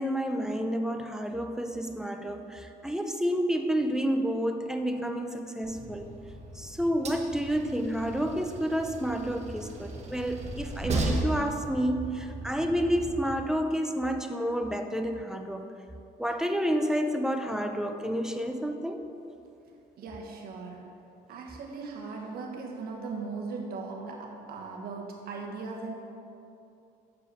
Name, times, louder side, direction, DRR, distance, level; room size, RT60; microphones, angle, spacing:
voice 1, 0.0-6.1 6.5-15.7 16.2-19.0, equal, 5° right, 5 dB, 0.5 m, -30 dB
Train, 5.6-13.4, right 2 dB, 40° right, 1.1 m, -36 dB
voice 2, 20.0-21.0 21.3-25.9, right 4 dB, 65° right, 1 dB, 1.3 m, -38 dB
7.2 x 4.7 x 6.8 m, 2.7 s
cardioid pair, 110°, 17 cm